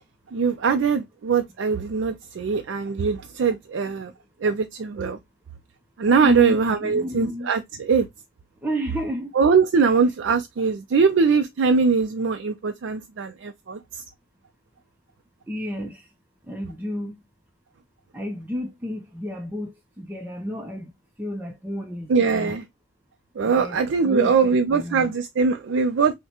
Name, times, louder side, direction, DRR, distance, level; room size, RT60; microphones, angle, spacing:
voice 1, 0.3-4.1 4.4-5.2 6.0-8.1 9.4-14.0 22.1-22.6 23.4-26.1, right 5 dB, 75° right, 0.4 m, -22 dB
voice 2, 6.2-7.5 8.6-9.3 15.5-16.1 16.4-17.2 18.1-20.9 21.2-22.5 23.4-23.8 24.0-25.1, equal, 10° right, 0.5 m, -31 dB
5.6 x 2.1 x 2.8 m
head